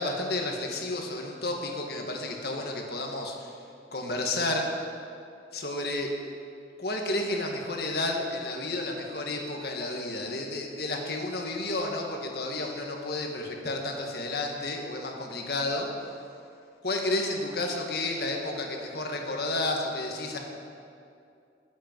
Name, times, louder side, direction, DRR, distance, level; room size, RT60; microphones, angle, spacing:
voice 1, 0.0-3.6 3.9-4.7 5.5-6.1 6.8-15.9 16.8-20.4, left 2 dB, 60° left, 1 dB, 1.7 m, -31 dB
20.5 x 8.4 x 4.6 m, 2.5 s
head